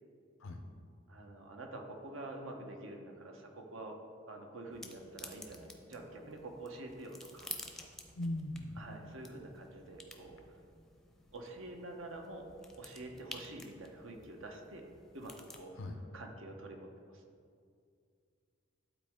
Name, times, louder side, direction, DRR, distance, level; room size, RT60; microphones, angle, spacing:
voice 1, 1.1-4.0 4.3-7.5 8.8-10.4 11.3-12.5 12.8-14.9 15.1-15.8 16.1-17.2, right 2 dB, 80° right, 2 dB, 1.0 m, -47 dB
sound 1, 4.7-15.6, left 1 dB, ahead, 0.5 m, -52 dB
voice 2, 8.2-8.8 15.7-16.0, left 1 dB, 85° left, 4 dB, 0.6 m, -39 dB
12.0 x 4.1 x 3.6 m, 2.3 s
head